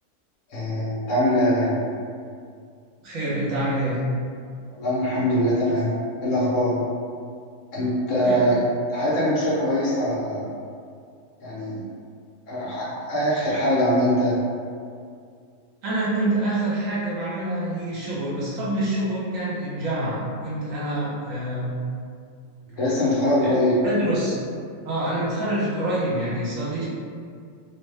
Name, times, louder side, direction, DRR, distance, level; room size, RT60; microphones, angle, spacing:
voice 1, 0.5-1.7 4.8-6.0 6.2-6.8 7.7-8.6 8.9-10.5 11.4-11.8 12.5-14.3 22.8-23.8, equal, 65° left, -8 dB, 1.1 m, -22 dB
voice 2, 3.0-4.0 8.2-8.5 15.8-21.8 23.4-23.5 23.8-24.3 24.8-26.8, right 1 dB, 65° right, -8 dB, 1.2 m, -26 dB
2.8 x 2.2 x 3.2 m, 2.3 s
omnidirectional pair, 1.5 m